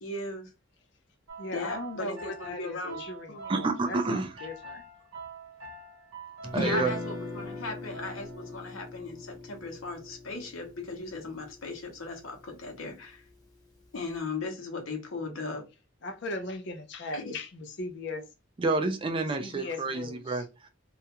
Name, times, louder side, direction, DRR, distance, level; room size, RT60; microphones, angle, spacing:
voice 1, 0.0-0.5 1.5-3.5 6.6-13.2 13.9-15.6 17.1-17.3, left 3 dB, 80° left, 0.8 m, -37 dB
sound 1, 1.3-8.6, right 4 dB, 85° right, 0.8 m, -45 dB
voice 2, 1.4-4.8 16.0-18.2 19.4-20.4, left 2 dB, 60° left, 0.5 m, -38 dB
voice 3, 3.5-4.4 6.5-6.9 18.6-20.7, right 3 dB, 25° right, 0.3 m, -29 dB
Guitar, 6.4-12.6, left 3 dB, 20° left, 0.7 m, -40 dB
2.4 x 2.2 x 2.8 m
head